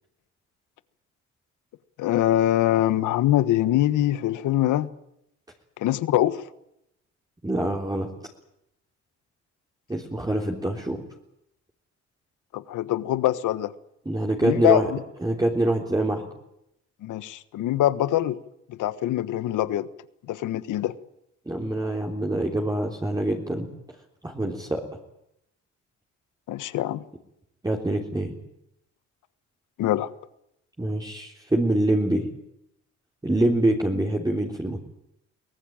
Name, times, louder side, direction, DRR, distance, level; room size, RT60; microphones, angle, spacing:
voice 1, 2.0-4.9 5.8-6.4 12.5-13.7 14.4-15.0 17.0-18.4 18.7-19.9 20.3-20.9 26.5-27.0 29.8-30.1, left 13 dB, 85° left, 15 dB, 1.3 m, -23 dB
voice 2, 7.4-8.1 9.9-11.0 14.1-14.9 15.2-16.2 21.5-23.7 24.2-24.8 27.6-28.4 30.8-32.3 33.2-34.8, right 1 dB, 15° right, -1 dB, 3.6 m, -25 dB
23.5 x 18.0 x 8.9 m, 0.79 s
cardioid pair, 90°, 30 cm